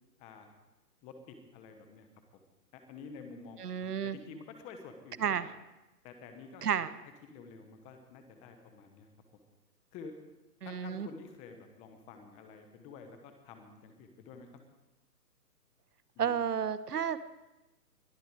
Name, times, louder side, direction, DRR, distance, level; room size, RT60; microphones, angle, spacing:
voice 1, 0.2-0.5 1.0-2.1 2.7-5.4 6.0-6.8 7.2-9.1 9.9-10.1 10.6-14.5 16.1-16.4, left 5 dB, 15° left, 6 dB, 1.0 m, -50 dB
voice 2, 3.6-4.2 5.2-5.5 6.6-6.9 10.6-11.1 16.2-17.2, right 8 dB, 70° right, 15 dB, 1.0 m, -31 dB
21.5 x 12.0 x 4.8 m, 1.0 s
hypercardioid pair, 145°, 48 cm